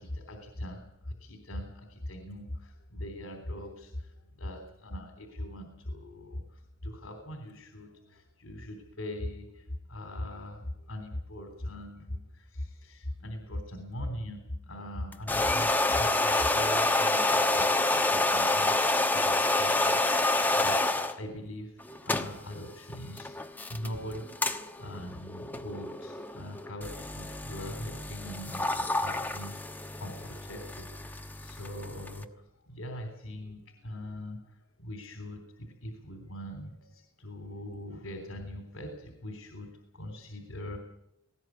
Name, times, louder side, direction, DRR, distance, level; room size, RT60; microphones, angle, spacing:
voice 1, 0.0-24.4 24.8-39.7 39.9-40.8, left 1 dB, 85° left, 4 dB, 3.4 m, -41 dB
sound 1, 15.1-21.2 21.8-32.2, left 2 dB, 10° left, 1.1 m, -28 dB
19.0 x 17.5 x 9.5 m, 0.84 s
head